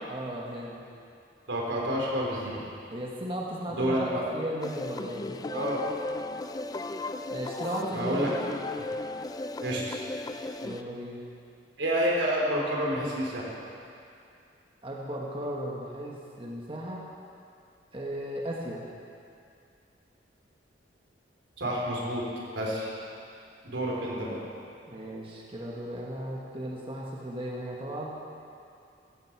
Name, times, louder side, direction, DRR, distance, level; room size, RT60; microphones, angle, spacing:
voice 1, 0.1-0.8 2.9-5.4 7.3-8.4 10.6-11.2 14.8-17.1 17.9-18.8 24.9-28.2, right 1 dB, 30° right, -3 dB, 1.5 m, -36 dB
voice 2, 1.5-2.6 3.7-4.2 5.5-5.9 7.9-8.3 8.8-8.9 9.6-10.0 11.8-13.5 21.6-22.2 22.6-22.9 23.6-24.4, equal, 90° right, -3 dB, 3.7 m, -29 dB
sound 1, 4.6-10.8, left 2 dB, 20° left, 0.4 m, -36 dB
15.0 x 14.5 x 4.7 m, 2.5 s
head